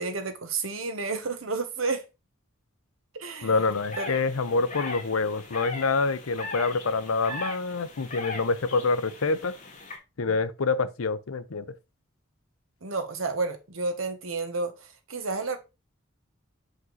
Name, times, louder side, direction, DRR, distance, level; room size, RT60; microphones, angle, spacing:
voice 1, 0.0-2.0 3.1-3.5 4.0-4.1 12.8-15.6, right 3 dB, 75° right, 1.2 m, -31 dB
voice 2, 3.4-9.6 10.2-11.8, left 4 dB, 85° left, 0.7 m, -26 dB
sound 1, 3.5-10.0, left 2 dB, 35° left, 1.9 m, -39 dB
6.4 x 5.1 x 4.0 m
head